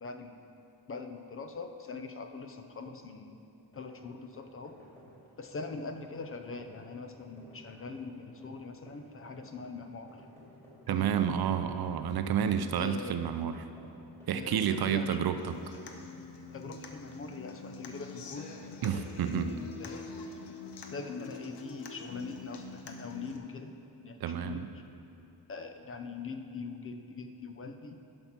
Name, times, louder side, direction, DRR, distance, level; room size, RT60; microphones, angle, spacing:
voice 1, 0.0-0.4 0.9-3.4 3.7-4.8 5.4-10.2 10.9-11.6 12.7-13.2 14.3-15.2 16.5-18.5 18.8-20.1 20.9-23.8 24.0-24.6 25.5-28.0, left 4 dB, 35° left, 6 dB, 0.5 m, -42 dB
sound 1, 3.7-14.4 14.6-14.8 15.1-15.3, equal, 5° left, 2.6 m, -56 dB
voice 2, 10.9-13.6 14.3-15.6 18.8-19.5 24.2-24.7, right 8 dB, 60° right, 9 dB, 0.6 m, -30 dB
Human voice / Acoustic guitar, 15.4-23.4, left 4 dB, 80° left, 0.9 m, -46 dB
11.0 x 5.8 x 5.7 m, 2.8 s
wide cardioid pair, 155°, 41 cm